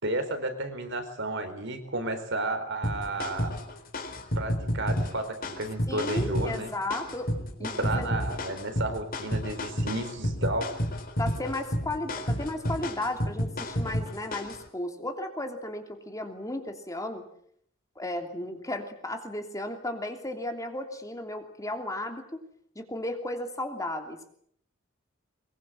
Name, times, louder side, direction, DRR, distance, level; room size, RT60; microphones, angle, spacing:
voice 1, 0.0-3.5 4.4-6.7 7.6-10.7, right 2 dB, 60° right, 8 dB, 4.3 m, -32 dB
sound 1, 2.8-14.6, equal, 45° left, 4.1 m, -31 dB
voice 2, 5.9-7.3 7.6-8.1 11.2-17.3 18.0-22.4 22.7-24.3, left 1 dB, 15° left, 5 dB, 3.0 m, -34 dB
24.0 x 22.5 x 7.7 m, 0.66 s
head